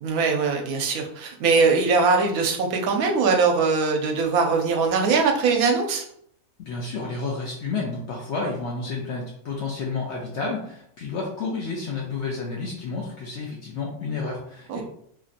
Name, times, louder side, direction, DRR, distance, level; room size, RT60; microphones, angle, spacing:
voice 1, 0.0-6.0 14.7-14.8, right 4 dB, 75° right, 2 dB, 1.0 m, -21 dB
voice 2, 6.6-14.8, left 4 dB, 70° left, -1 dB, 0.7 m, -30 dB
3.0 x 2.6 x 2.5 m, 0.67 s
omnidirectional pair, 1.6 m